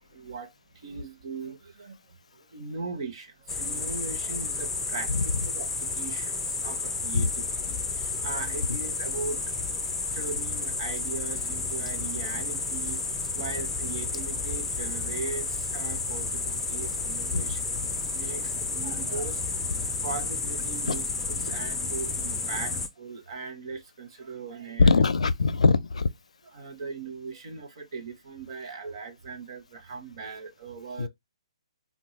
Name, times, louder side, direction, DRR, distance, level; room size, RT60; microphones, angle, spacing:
voice 1, 0.0-13.0 13.3-17.6 18.1-24.9 26.5-31.1, right 4 dB, 45° right, 0.8 m, -39 dB
sound 1, 3.5-22.9, left 4 dB, 5° left, 0.4 m, -31 dB
voice 2, 24.8-26.1 31.0-31.1, left 4 dB, 90° left, 0.4 m, -21 dB
3.3 x 2.2 x 3.0 m
hypercardioid pair, 160°, 3 cm